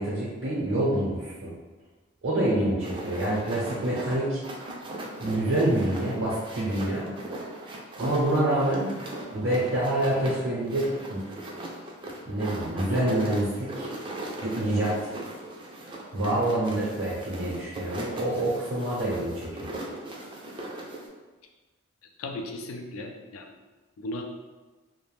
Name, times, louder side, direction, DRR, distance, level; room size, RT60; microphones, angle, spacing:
voice 1, 0.0-1.5 2.2-4.4 5.2-7.1 8.0-9.0 9.3-11.2 12.2-13.9 14.4-15.1 16.1-19.7, right 1 dB, 65° right, -8 dB, 0.7 m, -27 dB
sound 1, 2.8-21.1, right 1 dB, 25° right, 0.3 m, -39 dB
voice 2, 22.2-23.5 24.0-24.2, left 2 dB, 75° left, 3 dB, 0.4 m, -36 dB
2.4 x 2.1 x 3.1 m, 1.3 s
head